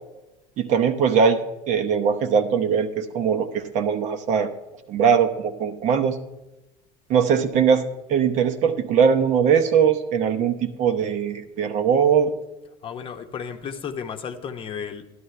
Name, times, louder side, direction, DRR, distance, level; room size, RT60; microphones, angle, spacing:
voice 1, 0.6-4.5 4.9-6.2 7.1-12.3, right 7 dB, 50° right, 9 dB, 0.8 m, -21 dB
voice 2, 12.8-15.0, left 7 dB, 35° left, 6 dB, 0.8 m, -33 dB
12.5 x 11.0 x 3.3 m, 1.0 s
supercardioid pair, 110°, 16 cm